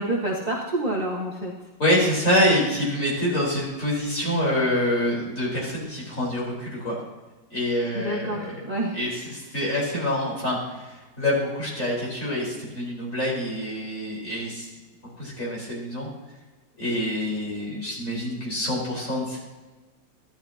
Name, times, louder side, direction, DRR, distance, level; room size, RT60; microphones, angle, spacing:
voice 1, 0.0-1.5 7.9-9.0, right 1 dB, 25° right, -4 dB, 1.4 m, -28 dB
voice 2, 1.8-6.9 7.5-8.5 8.9-14.7 15.2-16.1 16.8-19.4, left 1 dB, 40° left, -5 dB, 4.9 m, -26 dB
15.5 x 11.5 x 2.9 m, 1.2 s
omnidirectional pair, 2.1 m